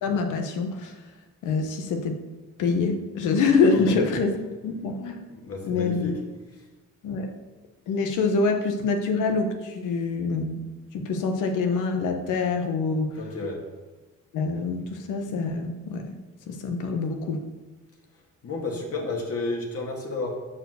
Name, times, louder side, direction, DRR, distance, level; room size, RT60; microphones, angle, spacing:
voice 1, 0.0-0.9 1.4-2.2 2.6-4.3 4.6-5.2 5.6-6.1 7.0-7.3 7.9-10.6 10.9-13.2 14.3-16.2 16.5-17.5, left 4 dB, 85° left, 5 dB, 1.2 m, -25 dB
voice 2, 5.3-6.2 6.6-6.7 13.2-13.7 18.4-20.3, left 3 dB, 50° left, 0 dB, 2.2 m, -31 dB
7.3 x 4.7 x 6.6 m, 1.2 s
cardioid pair, 90°, 30 cm